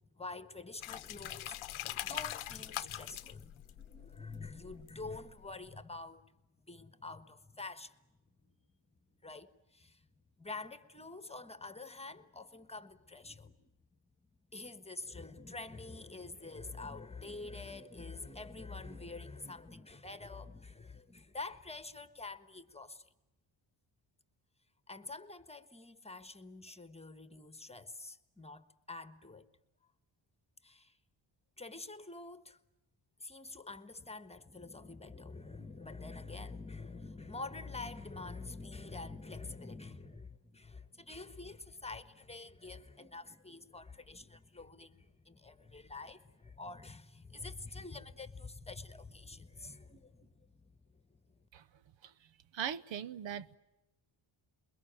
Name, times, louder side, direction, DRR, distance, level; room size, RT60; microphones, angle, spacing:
voice 1, 0.1-8.0 8.4-8.5 9.2-10.1 10.4-13.7 14.5-23.1 24.9-29.5 30.6-31.0 31.6-32.6 33.2-51.5, left 3 dB, 15° left, 1.4 m, -47 dB
sound 1, 0.8-5.4, left 14 dB, 85° left, 0.9 m, -43 dB
voice 2, 52.5-53.6, right 8 dB, 70° right, 0.9 m, -39 dB
28.5 x 22.5 x 9.0 m
cardioid pair, 100°, 47 cm